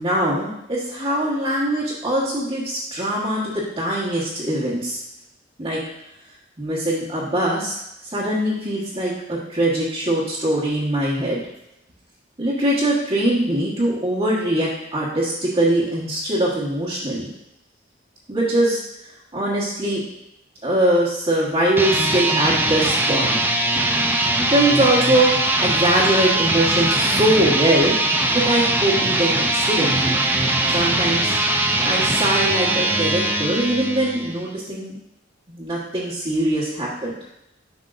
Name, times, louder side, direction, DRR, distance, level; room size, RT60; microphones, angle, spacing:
voice 1, 0.0-5.0 5.6-5.8 6.6-11.4 12.4-17.3 18.3-18.8 19.3-20.0 20.6-23.4 24.5-27.9 28.3-30.2 30.7-31.4 31.8-34.9 35.5-37.1, right 1 dB, 30° right, -10 dB, 1.3 m, -22 dB
sound 1, 21.7-34.4, right 2 dB, 10° right, 0.5 m, -21 dB
7.8 x 5.5 x 2.6 m, 0.83 s
head